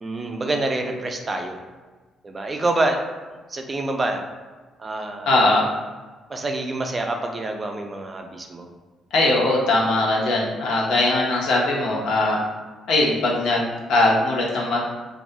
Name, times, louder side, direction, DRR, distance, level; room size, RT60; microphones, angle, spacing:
voice 1, 0.0-1.6 2.2-3.0 3.3-4.2 4.8-5.4 6.3-8.7, right 2 dB, 30° right, 3 dB, 0.3 m, -27 dB
voice 2, 5.3-5.6 9.1-12.4 12.9-14.8, left 2 dB, 80° left, -3 dB, 0.6 m, -20 dB
2.3 x 2.1 x 2.6 m, 1.3 s
cardioid pair, 90°, 0 cm